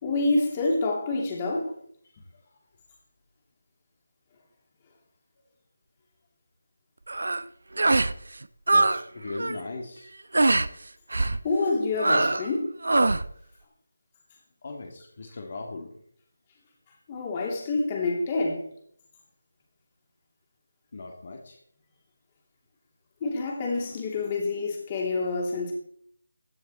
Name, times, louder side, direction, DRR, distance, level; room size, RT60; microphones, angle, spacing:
voice 1, 0.0-1.7 11.4-12.7 17.1-18.7 23.2-25.7, left 3 dB, 20° left, 2.8 m, -27 dB
sound 1, 7.1-7.4 7.8-8.2 8.4-9.0 9.3-9.6 10.3-10.7 11.1-11.4 12.0-12.5 12.8-13.3, right 2 dB, 75° right, 0.8 m, -23 dB
voice 2, 8.7-10.1 14.6-15.9 20.9-21.6, left 2 dB, 40° left, 2.1 m, -38 dB
16.0 x 10.5 x 4.3 m
figure-of-eight pair, 170°, 0 cm